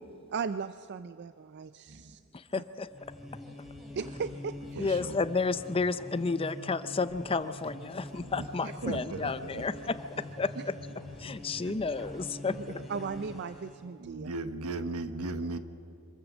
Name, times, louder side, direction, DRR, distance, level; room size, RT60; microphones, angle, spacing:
voice 1, 0.3-2.2 2.5-2.6 4.0-4.9 8.6-8.7 12.9-14.3, right 5 dB, 50° right, 13 dB, 0.4 m, -37 dB
voice 2, 2.3-2.9 4.8-9.7 10.4-10.5 11.2-12.6, left 4 dB, 25° left, 13 dB, 0.5 m, -31 dB
sound 1, 2.8-13.8, left 1 dB, ahead, 3.4 m, -45 dB
voice 3, 3.9-4.3 4.8-5.2 7.9-8.5 8.8-9.9 11.6-12.0 12.5-12.9 14.0-15.6, right 2 dB, 90° right, 10 dB, 1.1 m, -39 dB
25.5 x 14.0 x 7.3 m, 2.7 s
head